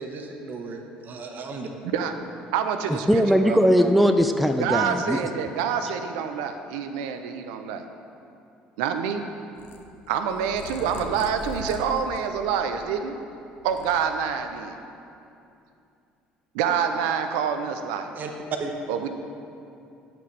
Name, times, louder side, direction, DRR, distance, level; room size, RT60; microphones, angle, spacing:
voice 1, 0.0-1.7 18.1-18.3 18.6-18.7, right 3 dB, 45° right, 3 dB, 0.8 m, -35 dB
voice 2, 2.5-3.6 4.6-7.8 8.8-9.3 10.1-13.2 13.6-14.8 16.5-18.1 18.9-19.1, right 7 dB, 75° right, 7 dB, 0.5 m, -27 dB
voice 3, 3.1-5.3, equal, ahead, 6 dB, 0.4 m, -20 dB
Purr, 9.6-13.1 13.5-14.6, left 1 dB, 55° left, 0.7 m, -41 dB
8.7 x 5.9 x 3.2 m, 2.6 s
hypercardioid pair, 60°, 4 cm